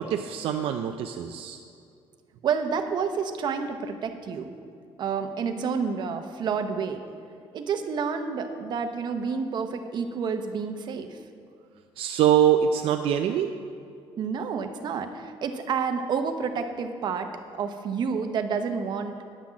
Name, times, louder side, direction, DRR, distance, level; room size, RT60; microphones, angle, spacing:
voice 1, 0.0-1.6 12.0-13.5, right 9 dB, 70° right, 5 dB, 0.5 m, -24 dB
voice 2, 2.4-4.5 5.0-7.0 7.5-11.2 14.2-19.1, right 6 dB, 50° right, 6 dB, 0.8 m, -29 dB
10.0 x 5.9 x 7.4 m, 2.4 s
cardioid pair, 155°, 10 cm